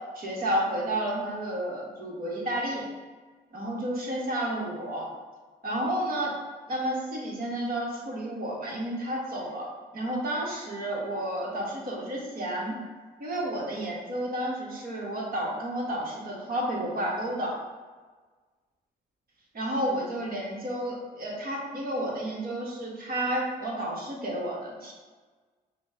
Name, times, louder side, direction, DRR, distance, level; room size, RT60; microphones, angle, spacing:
voice 1, 0.1-2.9 3.5-5.1 5.6-6.3 6.7-9.7 9.9-12.7 13.2-17.5 19.5-24.9, right 1 dB, 50° right, -3 dB, 1.4 m, -31 dB
6.1 x 2.3 x 3.6 m, 1.4 s
supercardioid pair, 60°, 19 cm